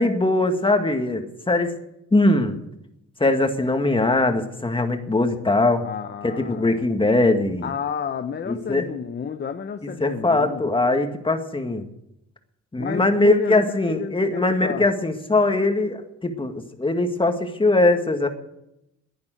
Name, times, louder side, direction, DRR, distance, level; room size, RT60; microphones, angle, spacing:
voice 1, 0.0-1.7 2.1-2.6 3.2-5.8 6.2-7.7 8.5-8.9 10.0-11.8 12.7-18.3, left 2 dB, 15° left, 6 dB, 2.0 m, -21 dB
voice 2, 5.8-6.8 7.6-10.8 12.8-14.9, left 6 dB, 35° left, 9 dB, 0.8 m, -31 dB
11.0 x 9.5 x 9.2 m, 0.83 s
cardioid pair, 90°, 30 cm